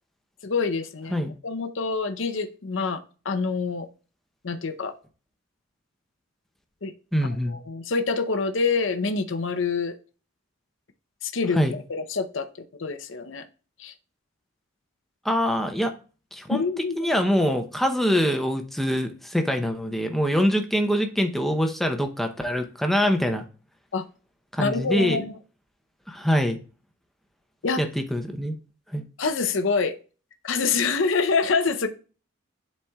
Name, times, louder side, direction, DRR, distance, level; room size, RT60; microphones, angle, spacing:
voice 1, 0.4-3.9 4.4-4.9 6.8-6.9 7.5-10.0 11.2-13.4 13.8-13.9 16.5-17.1 23.9-24.1 24.6-25.3 27.6-27.9 29.2-29.9 30.4-31.9, left 4 dB, 70° left, 8 dB, 0.7 m, -26 dB
voice 2, 7.1-7.6 11.5-11.8 15.2-15.9 16.3-16.6 17.0-23.4 24.5-25.2 26.1-26.6 27.8-28.5 28.9-29.0, equal, ahead, 5 dB, 0.7 m, -24 dB
10.5 x 4.2 x 2.3 m, 0.37 s
head